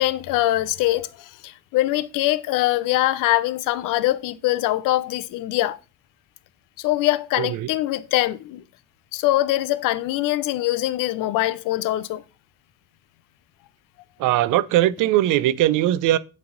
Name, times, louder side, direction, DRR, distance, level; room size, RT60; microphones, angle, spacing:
voice 1, 0.0-5.8 6.8-8.6 9.1-12.2, left 16 dB, 75° left, 0.5 m, -23 dB
voice 2, 7.4-7.7 14.2-16.2, right 14 dB, 70° right, 0.5 m, -20 dB
9.5 x 3.3 x 3.9 m
cardioid pair, 145°, 32 cm